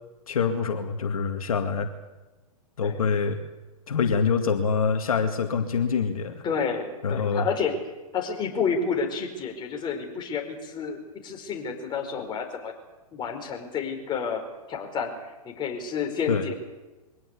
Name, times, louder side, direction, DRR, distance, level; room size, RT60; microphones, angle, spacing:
voice 1, 0.3-1.9 2.8-3.4 3.9-6.4 7.0-7.5 16.3-16.5, left 5 dB, 75° left, 6 dB, 2.1 m, -25 dB
voice 2, 6.4-7.7 8.1-12.7 13.1-14.4 14.7-16.5, left 6 dB, 25° left, 2 dB, 4.9 m, -30 dB
23.0 x 18.0 x 8.4 m, 1.2 s
hypercardioid pair, 120°, 18 cm